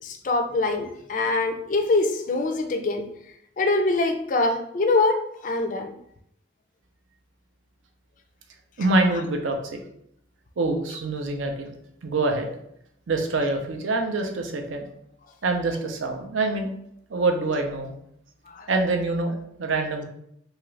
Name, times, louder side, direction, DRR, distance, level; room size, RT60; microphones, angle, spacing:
voice 1, 0.0-3.1 3.6-5.9 18.5-18.7, left 2 dB, 40° left, 6 dB, 0.3 m, -24 dB
voice 2, 8.8-9.8 10.6-11.7 12.0-12.5 13.1-14.9 15.4-16.7 17.1-17.9 18.7-20.1, right 2 dB, 85° right, 4 dB, 0.5 m, -25 dB
2.8 x 2.4 x 3.1 m, 0.73 s
head